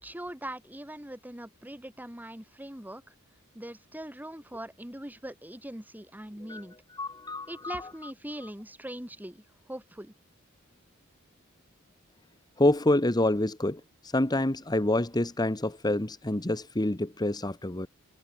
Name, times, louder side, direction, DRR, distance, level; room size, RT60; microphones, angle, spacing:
voice 1, 0.0-3.1 3.5-6.8 7.5-10.1, right 1 dB, 10° right, 2.3 m, -41 dB
voice 2, 6.9-8.1 8.4-8.5 12.6-17.9, left 1 dB, 20° left, 1.2 m, -27 dB
head